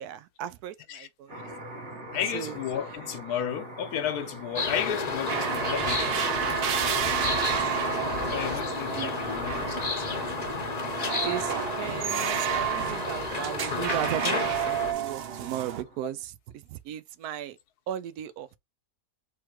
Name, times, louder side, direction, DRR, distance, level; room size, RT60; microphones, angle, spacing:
voice 1, 0.0-1.3 1.7-2.0 2.3-2.6 7.5-8.3 8.9-9.9 11.2-16.4 16.7-17.6 17.9-18.6, right 11 dB, 80° right, 1.1 m, -37 dB
sound 1, 1.3-16.0, right 1 dB, 50° right, 1.6 m, -46 dB
voice 2, 2.1-6.3 8.3-10.1, left 9 dB, 80° left, 1.3 m, -33 dB
sound 2, 4.6-14.9, left 4 dB, 35° left, 0.8 m, -32 dB
sound 3, 5.3-15.8, right 8 dB, 65° right, 0.6 m, -31 dB
3.5 x 3.1 x 4.5 m
omnidirectional pair, 1.6 m